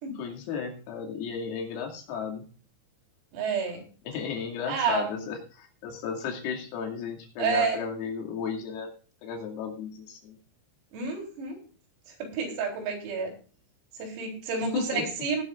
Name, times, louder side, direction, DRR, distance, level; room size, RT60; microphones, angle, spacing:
voice 1, 0.1-2.5 4.1-8.9 9.2-10.4 14.7-15.1, left 6 dB, 85° left, 1 dB, 5.2 m, -34 dB
voice 2, 3.3-3.9 4.7-5.2 7.4-7.8 10.9-11.6 12.2-13.3 14.0-15.4, right 5 dB, 85° right, 2 dB, 6.5 m, -29 dB
19.0 x 11.5 x 2.5 m, 0.38 s
omnidirectional pair, 6.0 m